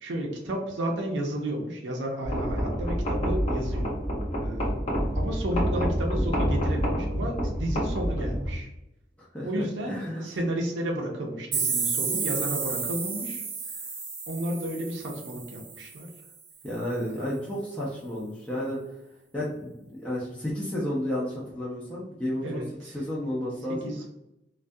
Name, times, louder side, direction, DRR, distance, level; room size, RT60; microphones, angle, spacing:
voice 1, 0.0-4.0 4.4-4.8 5.1-8.7 9.4-13.5 14.3-16.1 17.0-17.2 22.4-23.0 23.8-24.1, right 1 dB, 75° right, -1 dB, 0.5 m, -32 dB
sound 1, 2.2-8.6, equal, 35° left, 0.7 m, -28 dB
voice 2, 9.2-10.2 16.6-18.8 19.3-22.6 22.9-23.9, left 1 dB, 5° left, -7 dB, 0.4 m, -32 dB
sound 2, 11.5-16.2, right 5 dB, 45° right, 0.8 m, -31 dB
2.3 x 2.2 x 2.5 m, 0.87 s
head